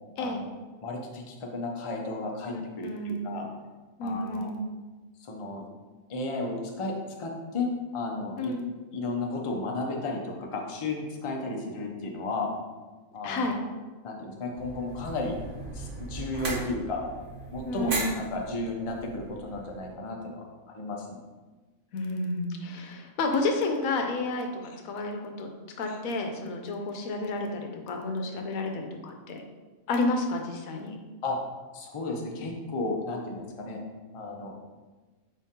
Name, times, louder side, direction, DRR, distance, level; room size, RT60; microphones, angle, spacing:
voice 1, 0.8-3.5 4.0-4.5 5.2-5.6 6.1-8.6 8.9-12.5 13.1-13.6 14.0-15.3 15.7-17.1 17.5-20.4 20.7-21.2 31.2-31.4 31.7-33.8 34.1-34.6, left 2 dB, 45° left, 1 dB, 0.4 m, -33 dB
voice 2, 2.5-3.4 4.0-4.6 8.4-8.7 13.2-13.5 17.6-18.2 21.9-25.5 25.8-29.4 29.9-31.0, left 2 dB, 90° left, 3 dB, 1.1 m, -31 dB
sound 1, 14.5-19.9, right 2 dB, 65° right, 1.2 m, -38 dB
5.0 x 3.6 x 2.8 m, 1.3 s
omnidirectional pair, 1.4 m